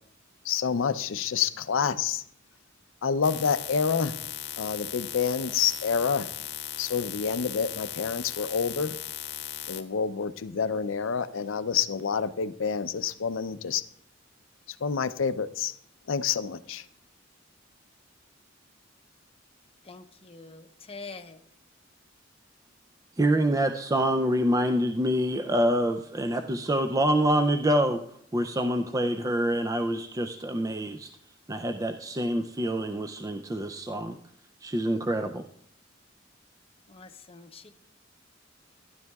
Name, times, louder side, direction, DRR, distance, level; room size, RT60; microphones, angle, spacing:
voice 1, 0.4-2.2 3.0-4.1 4.6-6.3 6.8-8.9 9.7-13.8 14.8-15.8 16.1-16.8, left 6 dB, 80° left, 12 dB, 0.5 m, -28 dB
sound 1, 3.2-9.8, left 11 dB, 60° left, 0.9 m, -37 dB
voice 2, 19.9-21.4 36.9-37.7, left 4 dB, 30° left, 7 dB, 0.7 m, -45 dB
voice 3, 23.2-28.0 28.3-31.1 31.5-34.2 34.6-35.4, right 1 dB, 20° right, 7 dB, 0.4 m, -26 dB
15.0 x 10.5 x 2.3 m, 0.68 s
head